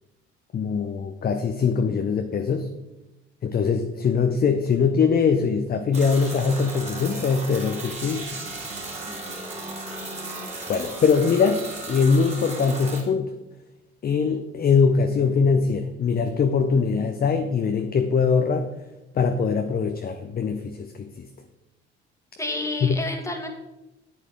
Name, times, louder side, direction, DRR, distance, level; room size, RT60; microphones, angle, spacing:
voice 1, 0.5-2.7 3.4-8.3 10.7-13.3 14.0-18.7 19.1-21.3 22.8-23.0, left 5 dB, 30° left, 7 dB, 0.7 m, -22 dB
sound 1, 5.9-13.0, right 2 dB, 20° right, 3.0 m, -35 dB
voice 2, 9.1-10.5 22.4-23.5, left 2 dB, 10° left, 3 dB, 1.8 m, -33 dB
10.5 x 8.4 x 3.5 m, 0.98 s
figure-of-eight pair, 55°, 33 cm